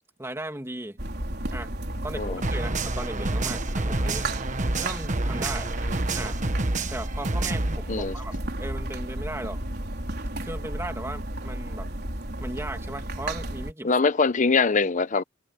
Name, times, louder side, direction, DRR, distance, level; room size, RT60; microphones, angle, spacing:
voice 1, 0.2-1.0 1.5-1.7 2.0-4.3 4.7-5.7 6.1-6.4 6.9-8.3 8.6-9.6 10.4-11.9 12.4-13.9, right 1 dB, 15° right, 2.6 m, -36 dB
sound 1, 1.0-13.7, right 1 dB, 55° right, 4.6 m, -33 dB
sound 2, 2.4-7.8, right 2 dB, 40° right, 1.3 m, -29 dB
voice 2, 13.8-15.2, left 4 dB, 40° left, 0.7 m, -22 dB
head